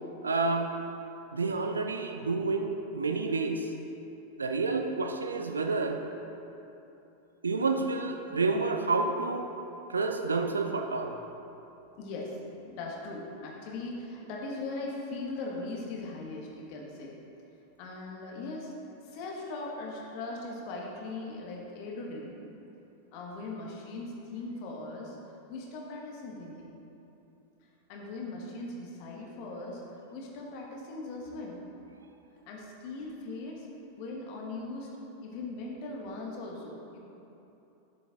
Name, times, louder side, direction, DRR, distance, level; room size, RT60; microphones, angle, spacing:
voice 1, 0.2-0.7 1.3-3.7 4.4-6.0 7.4-9.5 9.9-11.2, right 3 dB, 75° right, 5 dB, 0.5 m, -29 dB
voice 2, 12.0-12.4 12.7-17.1 17.8-18.7 19.0-22.4 23.1-26.7 27.9-31.6 32.5-33.7 34.0-34.9 35.2-37.0, left 2 dB, 45° left, -2 dB, 1.4 m, -39 dB
11.0 x 6.9 x 2.5 m, 2.9 s
figure-of-eight pair, 90°, 0 cm